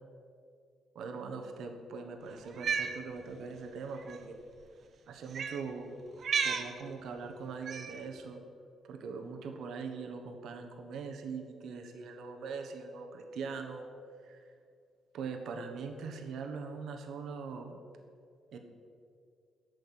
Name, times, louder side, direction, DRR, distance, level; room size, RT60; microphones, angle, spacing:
voice 1, 0.9-4.4 5.1-5.9 6.4-8.4 8.8-13.9 14.2-14.4 15.1-17.8 18.5-18.6, right 5 dB, 75° right, 4 dB, 1.3 m, -41 dB
Cat, 2.5-2.9 4.0-4.2 5.3-5.6 6.2-6.7 7.7-8.0, right 6 dB, 55° right, 0.9 m, -32 dB
9.1 x 6.6 x 8.4 m, 2.3 s
cardioid pair, 90°, 0 cm